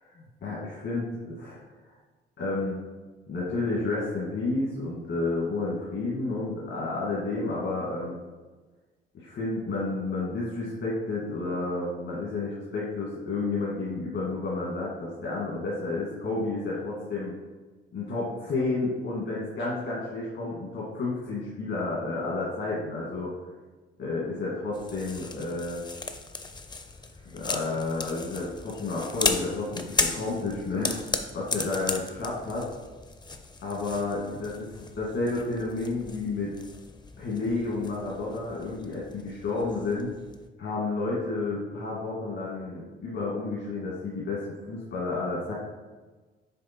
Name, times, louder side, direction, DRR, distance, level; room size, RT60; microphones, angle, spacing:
voice 1, 0.4-1.6 2.4-2.8 3.3-8.2 9.1-17.3 17.9-23.3 24.0-25.8 27.3-32.7 33.6-36.5 37.2-40.1 40.6-45.5, left 3 dB, 65° left, -6 dB, 1.8 m, -31 dB
sound 1, 24.7-40.5, left 3 dB, 20° left, 0.6 m, -36 dB
6.5 x 3.9 x 4.4 m, 1.3 s
cardioid pair, 90°, 20 cm